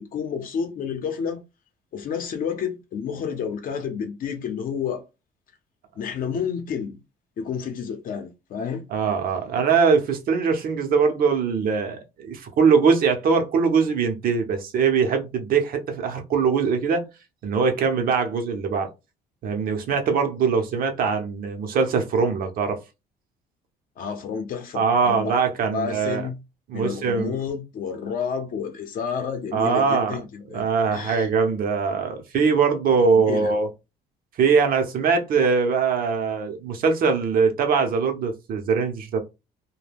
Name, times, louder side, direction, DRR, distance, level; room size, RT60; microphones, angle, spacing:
voice 1, 0.0-1.4 1.9-5.0 5.9-7.0 7.4-8.8 24.0-26.4 26.7-31.3 33.1-33.5, left 7 dB, 55° left, 0.7 m, -30 dB
voice 2, 8.9-17.0 17.4-18.9 19.4-22.8 24.7-26.3 26.7-27.4 29.5-30.2 30.5-33.7 34.4-39.2, right 5 dB, 60° right, 0.7 m, -22 dB
2.2 x 2.2 x 3.3 m
cardioid pair, 110°, 17 cm